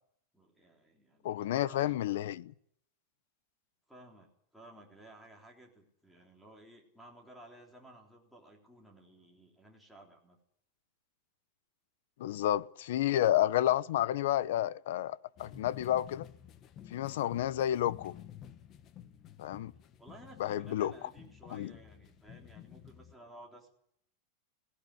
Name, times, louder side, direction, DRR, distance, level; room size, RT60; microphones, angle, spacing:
voice 1, 0.3-2.2 3.9-10.4 20.0-23.7, right 1 dB, ahead, 3.5 m, -55 dB
voice 2, 1.2-2.5 12.2-16.3 16.9-18.2 19.4-19.7 20.4-20.9 21.5-21.7, left 12 dB, 70° left, 0.8 m, -30 dB
sound 1, 15.4-23.1, left 10 dB, 30° left, 1.2 m, -52 dB
18.0 x 17.0 x 9.6 m
supercardioid pair, 165°, 0 cm